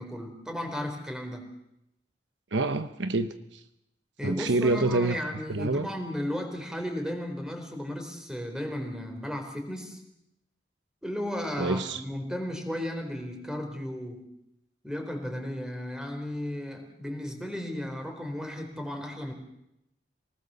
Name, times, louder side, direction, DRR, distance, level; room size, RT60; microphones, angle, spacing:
voice 1, 0.0-1.5 4.2-10.0 11.0-14.2 14.8-19.3, left 1 dB, 5° right, 4 dB, 4.1 m, -34 dB
voice 2, 2.5-3.6 4.2-5.2 5.5-5.9 11.6-12.0, right 2 dB, 70° right, 10 dB, 1.0 m, -27 dB
27.5 x 19.5 x 7.0 m, 0.84 s
head